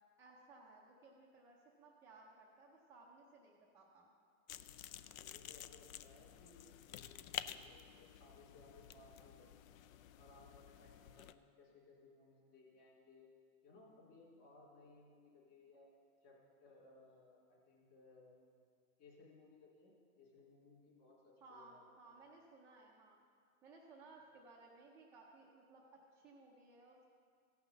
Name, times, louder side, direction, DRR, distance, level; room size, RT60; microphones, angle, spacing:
voice 1, 0.2-4.1 21.4-23.2 23.6-27.0, right 3 dB, 5° right, -5 dB, 0.4 m, -61 dB
sound 1, 4.5-11.3, left 11 dB, 70° left, 0.6 m, -51 dB
voice 2, 5.1-9.7 10.2-13.3 13.6-15.9 16.2-18.4 19.0-21.9, left 3 dB, 30° left, -3 dB, 3.3 m, -63 dB
15.5 x 5.9 x 6.9 m, 2.2 s
hypercardioid pair, 150°, 43 cm